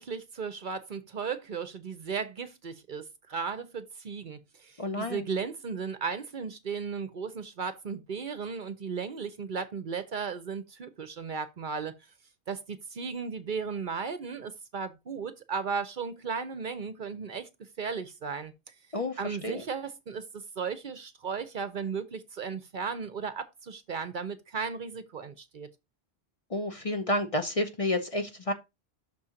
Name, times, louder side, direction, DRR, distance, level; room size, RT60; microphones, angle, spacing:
voice 1, 0.0-11.9 12.5-17.5 17.8-18.5 19.2-25.7, right 5 dB, 55° right, 0.7 m, -35 dB
voice 2, 4.8-5.2 18.9-19.6 26.5-28.5, left 1 dB, 35° left, 0.7 m, -30 dB
6.2 x 4.3 x 4.9 m
omnidirectional pair, 1.1 m